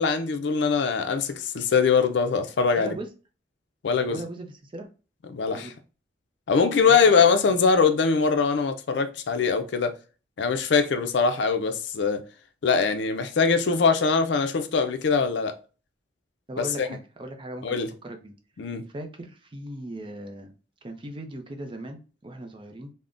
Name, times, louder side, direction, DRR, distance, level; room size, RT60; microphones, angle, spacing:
voice 1, 0.0-2.9 3.8-4.2 5.3-5.7 6.5-10.0 10.4-12.2 12.6-15.6 16.6-16.9 17.6-17.9 18.6-18.8, left 5 dB, 70° left, 0.4 m, -22 dB
voice 2, 2.7-3.1 4.1-4.9 5.5-5.7 6.8-7.3 16.5-17.8 18.0-18.3 18.9-20.5 20.8-22.9, right 1 dB, 30° right, 0.5 m, -38 dB
3.5 x 2.1 x 2.4 m
head